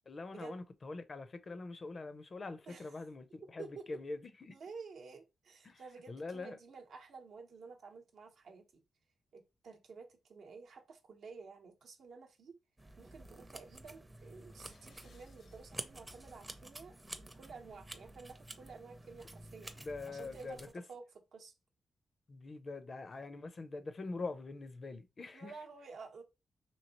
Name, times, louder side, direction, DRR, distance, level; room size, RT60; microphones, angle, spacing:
voice 1, 0.1-4.6 5.6-6.6 19.8-20.8 22.3-25.5, left 3 dB, 45° left, 0.5 m, -44 dB
voice 2, 4.5-8.8 9.3-12.5 13.0-19.8 20.1-21.0 21.3-21.5 25.3-26.2, right 4 dB, 75° right, 0.7 m, -52 dB
sound 1, 12.8-20.7, right 1 dB, 15° right, 0.5 m, -50 dB
sound 2, 14.4-15.7, left 4 dB, 80° left, 0.8 m, -66 dB
3.0 x 2.7 x 2.8 m
cardioid pair, 75°, 0 cm